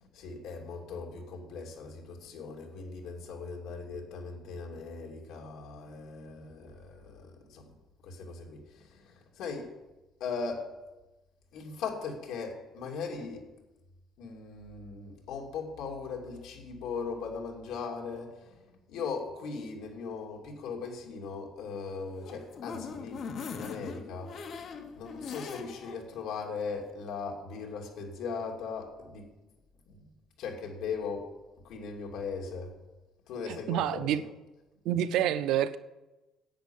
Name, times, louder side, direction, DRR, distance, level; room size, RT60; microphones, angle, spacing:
voice 1, 0.0-7.7 8.0-9.7 10.2-10.7 11.5-13.5 14.2-23.2 23.5-24.3 24.9-29.3 29.9-30.0 30.4-31.3 31.6-32.7 33.3-34.1, left 5 dB, 70° left, 0 dB, 2.6 m, -39 dB
sound 1, 22.0-26.0 26.4-26.5 26.8-26.9, left 5 dB, 40° left, 1.1 m, -41 dB
voice 2, 33.5-34.2 34.8-35.8, right 11 dB, 70° right, 12 dB, 0.6 m, -28 dB
10.5 x 8.5 x 7.1 m, 1.1 s
cardioid pair, 175°, 0 cm